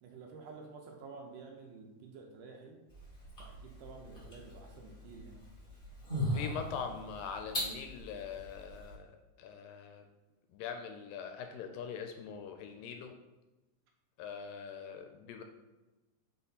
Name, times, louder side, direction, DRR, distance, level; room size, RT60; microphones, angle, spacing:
voice 1, 0.0-2.8 3.4-5.4, right 4 dB, 80° right, 1 dB, 2.1 m, -50 dB
sound 1, 2.9-8.9, left 1 dB, 35° left, 0.9 m, -40 dB
voice 2, 6.3-9.1 9.4-10.0 10.5-13.1 14.2-15.4, left 6 dB, 80° left, 5 dB, 2.1 m, -42 dB
5.6 x 4.2 x 4.0 m, 1.1 s
omnidirectional pair, 4.2 m